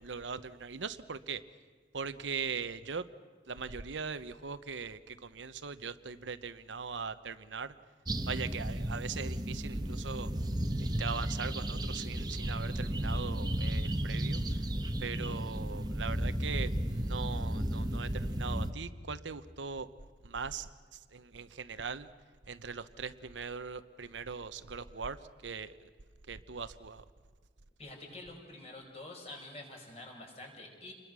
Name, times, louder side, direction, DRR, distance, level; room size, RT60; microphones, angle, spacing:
voice 1, 0.0-1.4 1.9-3.1 3.5-7.7 8.3-10.3 10.8-14.6 15.0-19.9 20.2-22.1 22.5-25.8 26.3-27.0, right 5 dB, 90° right, 12 dB, 0.9 m, -40 dB
sound 1, 8.1-18.7, right 1 dB, 20° right, 1.0 m, -34 dB
voice 2, 27.8-30.9, left 2 dB, 35° left, 2 dB, 4.7 m, -47 dB
28.5 x 21.5 x 6.2 m, 1.5 s
head